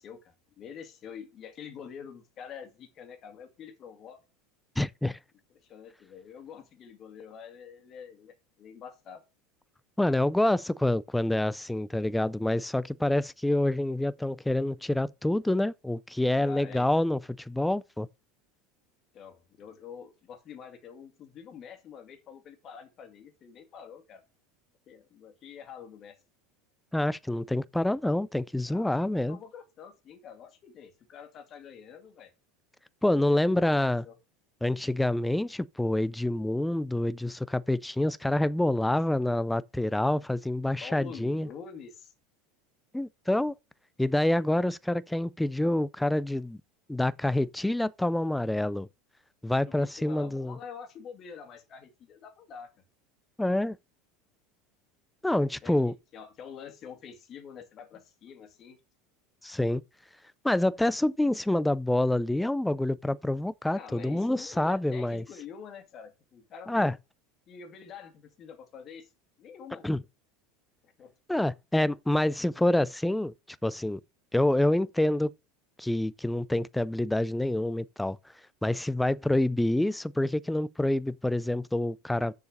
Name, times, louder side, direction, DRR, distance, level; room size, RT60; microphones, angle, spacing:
voice 1, 0.0-4.2 5.5-9.2 16.3-17.0 19.1-24.2 24.9-26.2 28.6-32.3 34.0-34.2 40.8-42.1 49.7-52.7 55.6-58.8 63.7-66.9 67.5-69.1 69.4-69.9 71.0-71.1, left 7 dB, 35° left, 2.2 m, -46 dB
voice 2, 4.8-5.2 10.0-17.2 17.5-18.1 26.9-29.4 33.0-34.1 34.6-41.5 42.9-43.5 44.0-46.6 46.9-48.9 49.4-50.6 53.4-53.8 55.2-55.9 59.4-59.8 60.4-65.2 66.7-66.9 69.8-70.0 71.3-73.3 73.6-74.0 74.3-75.3 75.8-78.2 78.6-82.3, left 1 dB, 5° left, 0.4 m, -27 dB
6.8 x 4.8 x 6.5 m
supercardioid pair, 130°, 0 cm